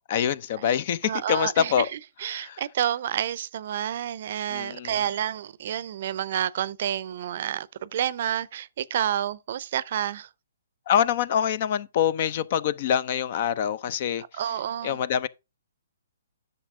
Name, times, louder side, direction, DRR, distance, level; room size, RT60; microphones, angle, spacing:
voice 1, 0.1-1.9 2.3-2.6 4.5-5.0 10.9-14.2 14.8-15.3, left 9 dB, 45° left, 0.6 m, -25 dB
voice 2, 1.0-10.3 14.3-15.0, right 10 dB, 50° right, 0.6 m, -29 dB
9.9 x 6.7 x 3.6 m
figure-of-eight pair, 130°, 0 cm